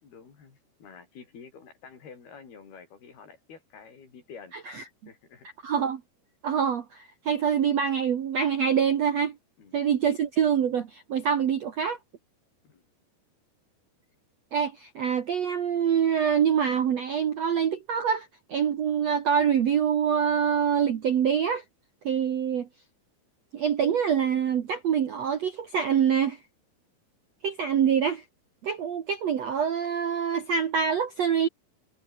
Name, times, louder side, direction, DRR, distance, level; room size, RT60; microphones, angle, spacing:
voice 1, 0.0-4.6 5.1-5.7 9.6-9.8 12.6-12.8, left 6 dB, 60° left, 6.8 m, -49 dB
voice 2, 5.6-6.0 6.4-9.3 9.7-12.0 14.5-21.6 22.0-22.7 23.5-26.4 27.4-28.2 28.6-31.5, right 7 dB, 65° right, 1.6 m, -25 dB
omnidirectional pair, 5.2 m